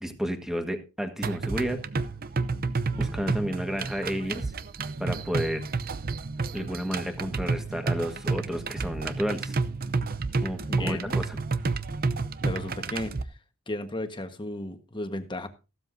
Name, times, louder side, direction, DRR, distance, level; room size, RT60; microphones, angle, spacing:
voice 1, 0.0-2.1 3.0-4.5 5.0-5.6 6.5-9.6 10.3-11.4, equal, ahead, 5 dB, 1.6 m, -31 dB
sound 1, 1.2-13.2, right 4 dB, 45° right, 0.7 m, -30 dB
voice 2, 10.7-11.2 12.4-13.1 13.7-15.5, left 1 dB, 20° left, 7 dB, 1.4 m, -34 dB
15.5 x 12.5 x 2.7 m, 0.31 s
head